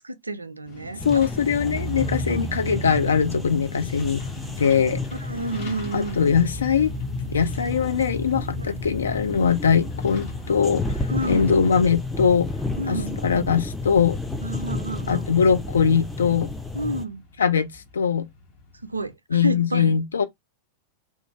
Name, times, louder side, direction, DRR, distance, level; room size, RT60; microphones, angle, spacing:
voice 1, 0.0-1.3 2.3-2.5 5.1-6.2 8.6-8.8 11.1-11.6 12.7-13.2 14.4-15.3 16.7-17.2 18.8-19.9, right 1 dB, 80° right, 0.4 m, -30 dB
Truck, 0.7-19.1, right 1 dB, 45° left, 0.9 m, -38 dB
voice 2, 1.0-4.2 4.6-5.0 5.9-6.9 7.3-10.9 11.3-12.5 12.9-13.0 13.2-14.2 15.1-16.5 17.4-18.3 19.3-20.2, left 6 dB, 70° left, 0.4 m, -21 dB
sound 1, 1.0-17.1, left 3 dB, 5° left, 0.5 m, -32 dB
2.4 x 2.3 x 2.9 m
figure-of-eight pair, 90°, 0 cm